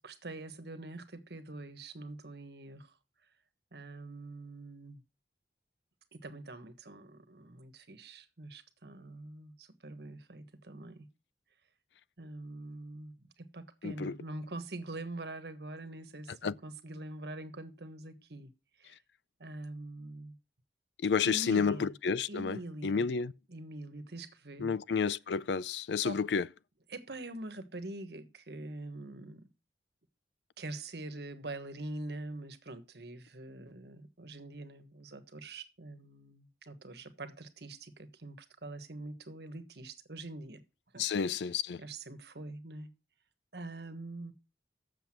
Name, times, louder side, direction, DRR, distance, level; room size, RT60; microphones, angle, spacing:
voice 1, 0.0-2.9 3.7-5.0 6.1-11.1 12.2-18.5 18.8-19.0 19.4-20.3 21.2-21.9 22.3-23.0 23.5-24.7 26.0-26.2 26.9-29.4 30.6-40.6 40.9-41.3 41.8-42.9 43.5-44.3, right 2 dB, 70° right, 1.4 m, -44 dB
voice 2, 13.8-14.2 16.4-16.5 21.0-23.3 24.6-26.5 41.0-41.8, left 6 dB, 80° left, 0.4 m, -30 dB
8.0 x 7.0 x 5.9 m
head